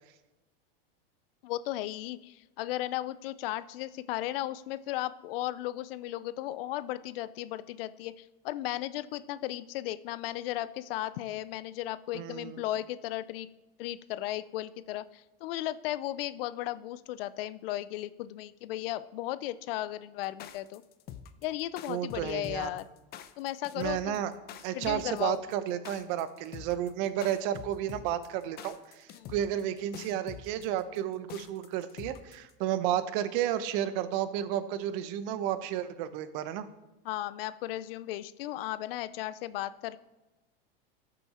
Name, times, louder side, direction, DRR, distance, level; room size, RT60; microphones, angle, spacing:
voice 1, 1.4-13.5 13.8-20.8 21.4-22.9 23.4-24.2 24.7-25.4 29.1-29.3 37.0-40.0, left 14 dB, 70° left, 15 dB, 0.6 m, -35 dB
voice 2, 12.1-12.6 21.9-22.7 23.8-24.3 24.6-36.7, right 11 dB, 55° right, 13 dB, 0.9 m, -32 dB
sound 1, 20.2-32.5, left 9 dB, 35° left, 0.7 m, -45 dB
13.0 x 6.9 x 4.2 m, 1.1 s
supercardioid pair, 135°, 29 cm